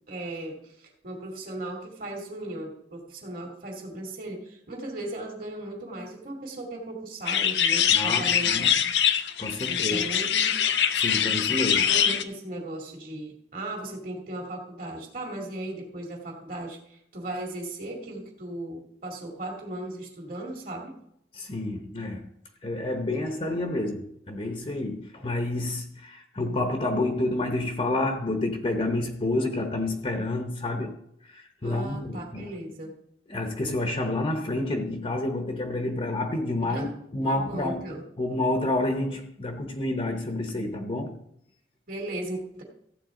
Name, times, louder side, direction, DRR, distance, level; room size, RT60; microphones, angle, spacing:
voice 1, 0.1-9.0 9.7-10.5 11.7-21.0 31.6-32.9 36.6-36.9 37.2-38.0 41.9-42.6, right 1 dB, 55° right, 2.6 m, -37 dB
sound 1, 7.3-12.2, left 9 dB, 80° left, 0.7 m, -23 dB
voice 2, 7.9-8.7 9.4-10.1 10.9-11.9 21.3-22.3 22.6-31.0 31.2-32.5 33.3-37.9 38.2-41.2, left 2 dB, 35° left, 1.0 m, -29 dB
15.0 x 8.6 x 3.8 m
head